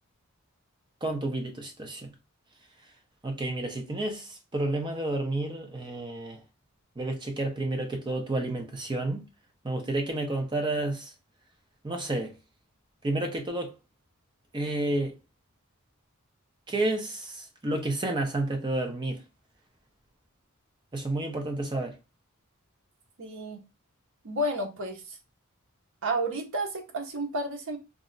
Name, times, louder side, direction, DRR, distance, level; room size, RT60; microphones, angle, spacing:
voice 1, 1.0-2.1 3.2-6.4 7.0-9.3 9.6-11.1 11.8-12.4 13.0-13.7 14.5-15.2 16.7-19.2 20.9-22.0, right 2 dB, 20° right, 0.6 m, -30 dB
voice 2, 23.2-23.6 24.2-25.2 26.0-27.8, right 1 dB, 65° right, 0.7 m, -31 dB
2.4 x 2.1 x 3.7 m
head